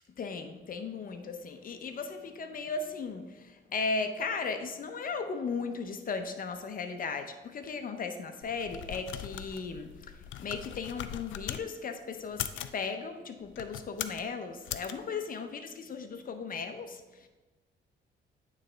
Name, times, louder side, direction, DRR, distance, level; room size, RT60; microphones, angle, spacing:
voice 1, 0.1-17.3, left 4 dB, 45° left, 7 dB, 0.7 m, -36 dB
sound 1, 8.4-11.6 12.2-12.8 13.5-14.3 14.7-14.9, left 11 dB, 75° left, 0.4 m, -40 dB
8.8 x 3.3 x 3.9 m, 1.2 s
cardioid pair, 90°, 20 cm